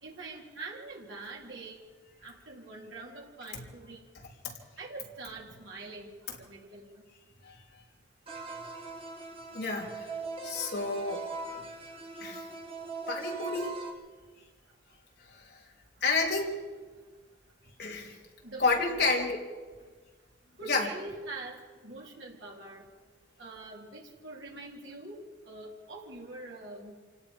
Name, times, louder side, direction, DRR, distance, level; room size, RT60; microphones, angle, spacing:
voice 1, 0.0-1.8 2.2-4.0 4.8-6.1 6.4-6.9 18.4-19.1 20.6-21.6 21.8-22.8 23.4-26.9, right 2 dB, 85° right, -2 dB, 4.0 m, -44 dB
sound 1, 8.3-13.9, right 3 dB, 30° right, 2.2 m, -41 dB
voice 2, 9.5-10.1 10.4-11.3 12.2-12.5 13.1-13.8 15.3-15.6 16.0-16.5 17.8-18.2 18.6-19.4 20.7-20.9, left 3 dB, 60° left, -1 dB, 3.4 m, -30 dB
28.0 x 17.5 x 5.4 m, 1.4 s
head